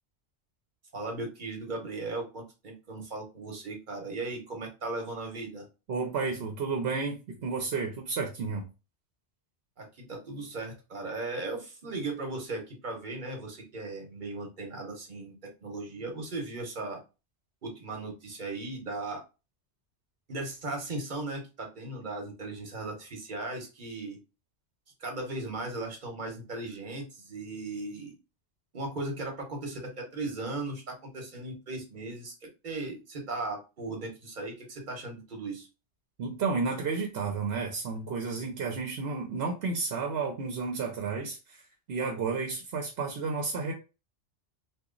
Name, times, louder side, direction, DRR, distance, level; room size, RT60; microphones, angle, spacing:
voice 1, 0.9-5.7 9.8-15.3 15.6-17.0 17.6-19.2 20.3-24.2 25.0-28.1 28.7-35.7, right 2 dB, 50° right, 1.1 m, -37 dB
voice 2, 5.9-8.7 36.2-43.7, right 4 dB, 70° right, 0.9 m, -32 dB
2.9 x 2.4 x 3.7 m
omnidirectional pair, 1.1 m